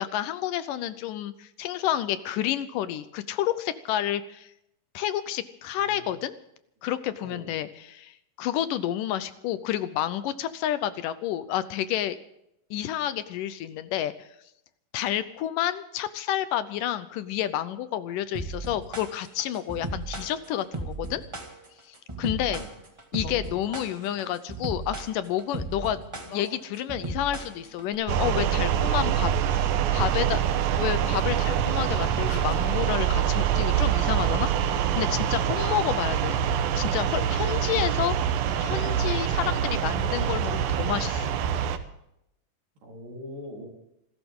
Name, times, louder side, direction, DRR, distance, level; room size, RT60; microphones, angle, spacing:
voice 1, 0.0-4.5 4.9-6.3 6.8-12.2 12.7-14.3 14.9-21.2 21.9-22.6 23.1-26.0 26.3-29.3 29.9-30.4 30.8-36.4 36.8-38.2 38.6-41.3, left 12 dB, 75° left, 13 dB, 2.2 m, -30 dB
voice 2, 5.8-6.2 7.2-7.5 22.3-22.8 42.8-43.7, left 1 dB, 70° right, -1 dB, 5.6 m, -42 dB
sound 1, 18.3-27.9, right 2 dB, 15° right, 1.2 m, -35 dB
sound 2, 23.2-24.3 25.8-27.9 28.3-29.8 31.3-31.4 31.8-32.0 32.2-32.4, left 5 dB, 55° left, 2.9 m, -45 dB
sound 3, 28.1-41.8, right 9 dB, 85° right, 2.8 m, -25 dB
27.0 x 13.5 x 3.7 m, 0.80 s
omnidirectional pair, 4.0 m